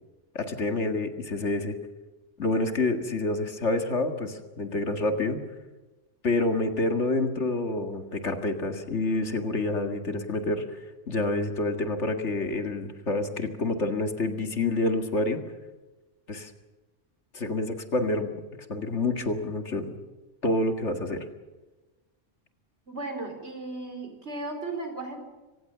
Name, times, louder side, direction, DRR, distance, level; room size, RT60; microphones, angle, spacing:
voice 1, 0.3-1.8 2.4-5.4 6.2-10.8 11.1-15.4 16.3-16.5 17.3-18.3 18.7-19.9 20.4-21.2, left 2 dB, 65° left, 6 dB, 2.3 m, -28 dB
voice 2, 22.9-25.2, right 2 dB, 60° right, 5 dB, 4.8 m, -35 dB
25.0 x 18.5 x 6.9 m, 1.2 s
omnidirectional pair, 1.3 m